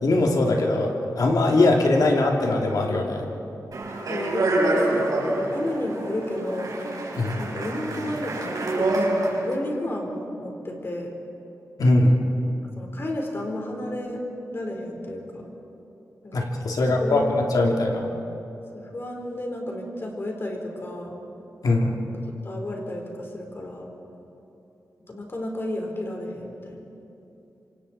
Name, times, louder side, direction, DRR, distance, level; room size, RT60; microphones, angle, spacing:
voice 1, 0.0-3.2 7.2-7.4 11.8-12.2 16.3-18.1 21.6-22.0, left 2 dB, 75° left, 0 dB, 3.0 m, -21 dB
Speech, 3.7-9.5, right 2 dB, 70° right, 4.8 m, -26 dB
voice 2, 4.1-6.7 7.4-11.1 12.8-14.2 14.5-15.5 16.2-16.4 16.8-17.3 18.7-21.2 22.1-22.2 22.4-23.9 25.1-26.8, left 1 dB, 40° left, 1 dB, 4.3 m, -32 dB
26.5 x 26.0 x 4.4 m, 3.0 s
wide cardioid pair, 120°, 6 cm